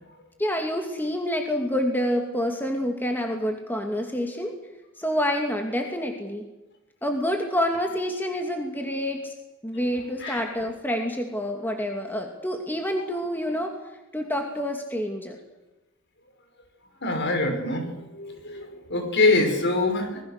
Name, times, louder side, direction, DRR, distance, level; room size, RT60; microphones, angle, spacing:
voice 1, 0.4-4.5 5.0-6.5 7.0-9.3 9.6-13.8 14.1-15.4, equal, 10° left, 2 dB, 2.5 m, -27 dB
voice 2, 17.0-20.2, left 2 dB, 55° left, 5 dB, 5.8 m, -24 dB
27.0 x 21.0 x 6.7 m, 1.0 s
head